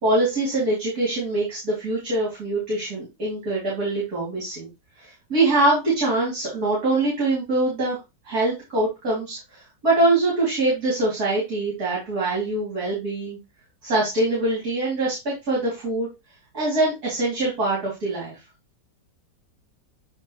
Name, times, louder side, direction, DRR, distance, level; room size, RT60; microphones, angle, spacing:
voice 1, 0.0-4.7 5.0-8.0 8.3-13.4 13.8-16.1 16.5-18.4, right 2 dB, 55° right, -5 dB, 3.5 m, -23 dB
9.2 x 3.4 x 3.2 m, 0.24 s
omnidirectional pair, 2.0 m